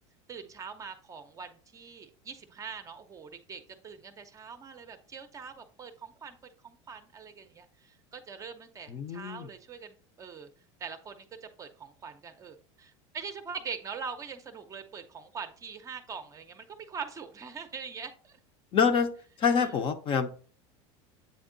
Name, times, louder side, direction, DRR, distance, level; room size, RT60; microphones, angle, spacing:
voice 1, 0.3-6.4 6.6-10.5 10.8-18.4 19.6-19.8, right 6 dB, 20° right, 8 dB, 0.6 m, -43 dB
voice 2, 8.9-9.5 18.7-19.1 19.4-20.3, left 6 dB, 35° left, 9 dB, 0.6 m, -26 dB
8.2 x 3.5 x 3.8 m, 0.41 s
supercardioid pair, 140°, 16 cm